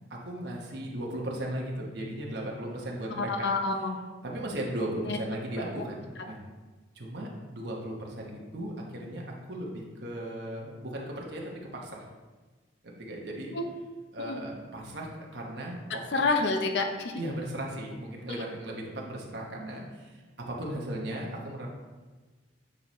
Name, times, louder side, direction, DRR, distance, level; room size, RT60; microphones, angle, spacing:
voice 1, 0.1-3.5 4.2-6.4 6.9-12.0 12.8-13.5 14.1-16.2 17.2-21.7, right 1 dB, 60° right, -2 dB, 1.0 m, -37 dB
voice 2, 3.3-4.0 5.0-5.2 13.5-13.6 14.3-14.4 16.1-17.1, left 3 dB, 60° left, 4 dB, 0.6 m, -27 dB
8.1 x 4.1 x 3.0 m, 1.3 s
head